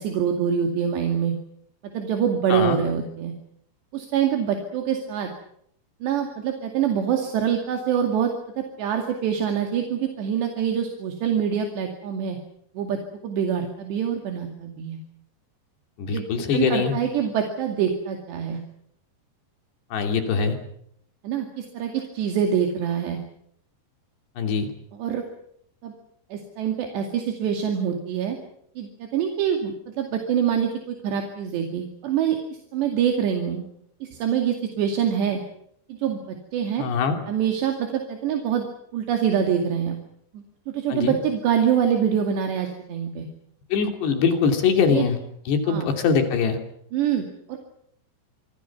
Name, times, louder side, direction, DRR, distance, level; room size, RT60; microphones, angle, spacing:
voice 1, 0.0-1.4 1.9-3.3 3.9-5.3 6.0-12.4 12.7-15.0 16.1-16.3 16.5-18.6 21.2-23.2 25.0-25.2 25.8-25.9 26.3-28.4 28.8-33.6 34.0-35.4 35.9-36.8 37.3-38.7 38.9-40.0 40.3-40.4 40.7-43.3 44.9-45.0 45.7-45.9 46.9-47.6, right 8 dB, 75° right, 3 dB, 4.4 m, -25 dB
voice 2, 2.5-2.8 16.0-17.0 19.9-20.6 24.4-24.7 36.8-37.2 40.9-41.2 43.7-45.2 45.5-46.6, left 6 dB, 70° left, 5 dB, 5.0 m, -22 dB
27.5 x 24.5 x 6.0 m, 0.70 s
omnidirectional pair, 5.1 m